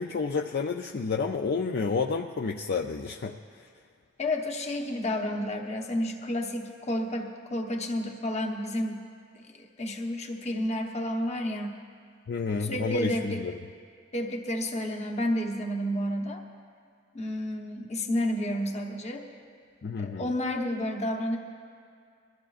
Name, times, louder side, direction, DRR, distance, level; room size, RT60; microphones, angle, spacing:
voice 1, 0.0-3.7 12.3-13.5 19.8-20.3, left 4 dB, 55° left, 3 dB, 0.4 m, -30 dB
voice 2, 4.2-9.0 9.3-11.8 12.6-13.5 14.1-16.4 17.1-19.3 20.0-21.4, left 1 dB, 35° left, 2 dB, 1.0 m, -31 dB
21.5 x 14.0 x 2.5 m, 2.2 s
head